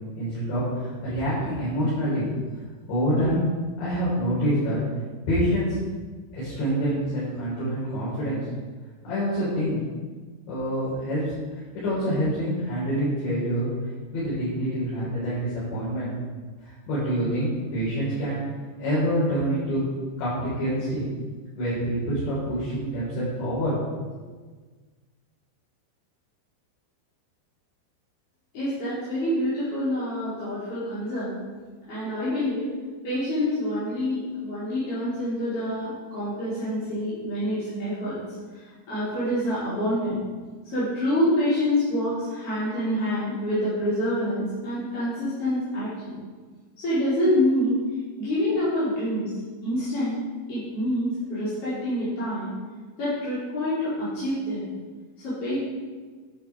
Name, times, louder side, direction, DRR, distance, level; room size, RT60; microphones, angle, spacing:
voice 1, 0.2-2.2 2.9-3.4 3.8-4.8 5.3-5.8 6.3-8.4 9.0-9.8 10.5-11.3 11.7-13.7 14.1-16.1 16.6-18.4 18.8-19.8 20.2-21.0 21.6-23.7 24.1-24.2, equal, 70° left, -10 dB, 6.1 m, -26 dB
voice 2, 28.5-31.4 31.9-32.7 33.0-38.2 38.5-40.2 40.6-46.1 46.8-47.8 48.2-49.2 49.6-50.2 50.5-52.5 53.0-54.7 55.2-55.5, left 1 dB, 30° left, -14 dB, 4.6 m, -26 dB
11.0 x 9.1 x 4.7 m, 1.4 s
omnidirectional pair, 5.3 m